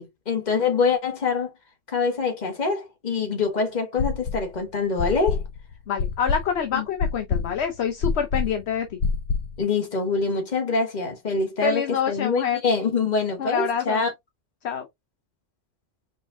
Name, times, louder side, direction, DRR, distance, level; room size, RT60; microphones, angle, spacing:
voice 1, 0.0-1.5 1.9-5.4 6.7-6.8 9.6-14.1, left 4 dB, 35° left, 1.5 m, -25 dB
sound 1, 4.0-4.6 5.0-9.6, left 5 dB, 85° left, 1.1 m, -26 dB
voice 2, 5.9-9.0 11.6-12.6 13.4-14.1 14.6-14.9, left 7 dB, 60° left, 1.0 m, -26 dB
5.3 x 3.5 x 2.6 m
omnidirectional pair, 1.3 m